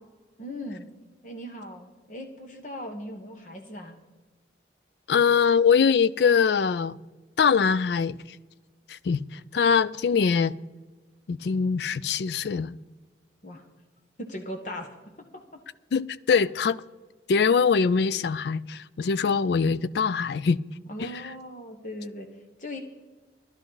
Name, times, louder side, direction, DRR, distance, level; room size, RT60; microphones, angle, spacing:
voice 1, 0.4-0.9 1.2-4.0 13.4-13.6 14.2-14.9 15.3-15.4 20.9-22.3 22.6-22.8, left 1 dB, 45° left, 1.2 m, -38 dB
voice 2, 5.1-7.0 7.4-8.2 8.9-10.5 11.3-12.8 15.9-16.8 17.3-20.6 21.0-21.2, left 6 dB, 65° left, 0.4 m, -23 dB
15.5 x 12.0 x 4.0 m
head